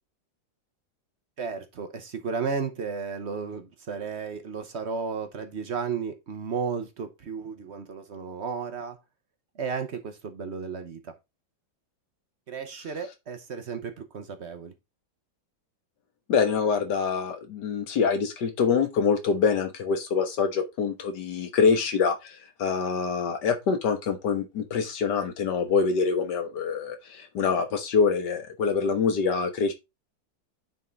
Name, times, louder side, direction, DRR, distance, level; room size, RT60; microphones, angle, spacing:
voice 1, 1.4-9.0 9.5-11.1 12.5-14.7, right 5 dB, 50° right, 0.9 m, -33 dB
voice 2, 16.3-29.7, left 5 dB, 65° left, 1.8 m, -25 dB
9.2 x 3.7 x 3.9 m
omnidirectional pair, 2.1 m